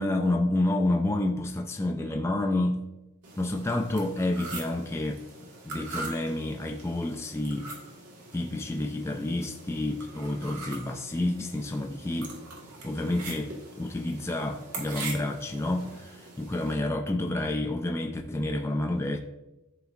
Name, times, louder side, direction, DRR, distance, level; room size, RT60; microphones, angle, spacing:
voice 1, 0.0-2.8 3.4-5.2 5.6-7.7 8.3-12.4 12.8-19.2, left 1 dB, 10° left, 3 dB, 0.3 m, -29 dB
sound 1, 3.2-16.7, right 3 dB, 85° right, 1.5 m, -43 dB
11.5 x 4.0 x 2.4 m, 0.97 s
head